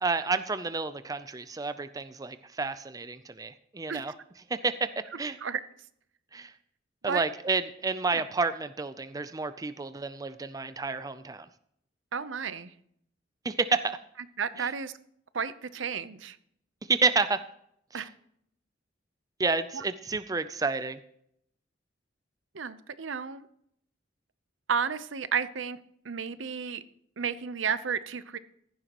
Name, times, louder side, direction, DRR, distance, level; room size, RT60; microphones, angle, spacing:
voice 1, 0.0-4.1 4.5-4.9 5.2-5.4 6.3-6.5 7.0-11.5 13.4-14.0 14.6-14.7 16.9-17.4 17.9-18.0 19.4-21.0, right 4 dB, 20° right, 12 dB, 0.4 m, -30 dB
voice 2, 12.1-12.7 14.4-14.9 15.3-16.4 17.9-18.1 19.7-19.8 22.5-23.5 24.7-25.8 26.0-26.8 27.2-28.4, right 6 dB, 80° right, 14 dB, 0.7 m, -32 dB
15.0 x 11.0 x 3.0 m, 0.70 s
head